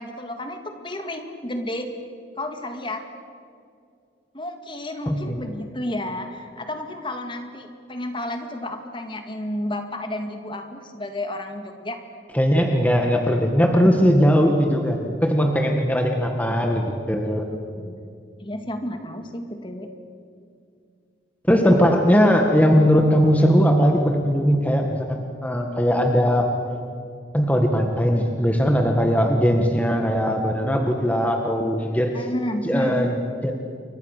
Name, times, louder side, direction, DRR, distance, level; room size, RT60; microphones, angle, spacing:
voice 1, 0.0-1.9 2.4-3.0 4.3-12.0 14.9-15.0 17.5-18.0 18.4-19.9 32.1-33.2, left 1 dB, 25° left, 6 dB, 2.1 m, -31 dB
voice 2, 5.1-5.4 12.3-17.5 21.5-26.5 27.3-32.1 32.6-33.5, equal, 10° left, 3 dB, 1.8 m, -19 dB
29.0 x 24.0 x 6.7 m, 2.3 s
head